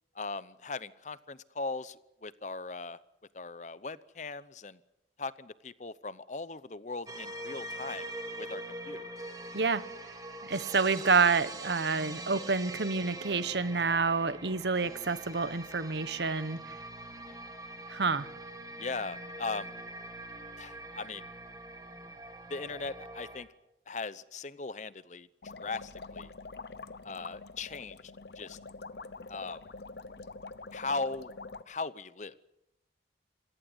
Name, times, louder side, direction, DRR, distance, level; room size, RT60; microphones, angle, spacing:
voice 1, 0.1-3.0 3.3-4.8 5.2-8.1 8.4-9.1 17.1-17.4 18.8-19.7 20.6-21.3 22.5-23.5 23.9-26.3 27.0-28.6 29.3-29.6 30.7-31.3 31.7-32.5, left 3 dB, 40° left, 17 dB, 0.8 m, -39 dB
sound 1, 7.1-23.4, right 1 dB, 20° right, 2.2 m, -43 dB
voice 2, 10.5-16.6 17.9-18.3, right 4 dB, 75° right, 15 dB, 1.1 m, -28 dB
sound 2, 25.4-31.6, left 3 dB, 65° left, 0.9 m, -45 dB
27.5 x 17.5 x 8.0 m, 0.87 s
head